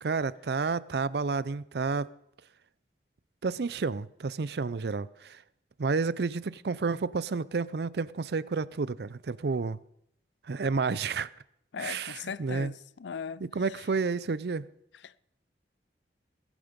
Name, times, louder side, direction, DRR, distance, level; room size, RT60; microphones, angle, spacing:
voice 1, 0.0-2.1 3.4-5.4 5.8-9.8 10.4-11.3 11.8-12.7 13.4-14.7, right 4 dB, 70° right, 0.5 m, -30 dB
voice 2, 11.7-12.7 13.0-13.4 15.0-15.2, left 6 dB, 90° left, 0.5 m, -38 dB
18.5 x 11.0 x 5.2 m
head